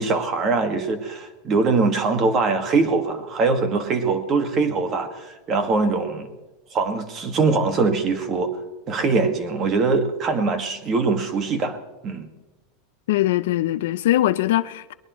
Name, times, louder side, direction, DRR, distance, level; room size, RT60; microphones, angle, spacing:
voice 1, 0.0-6.3 6.7-8.5 8.9-11.8 12.0-12.3, right 4 dB, 25° right, 1.8 m, -22 dB
voice 2, 13.1-14.9, left 14 dB, 70° left, 0.6 m, -21 dB
21.5 x 21.0 x 3.1 m
supercardioid pair, 170°, 0 cm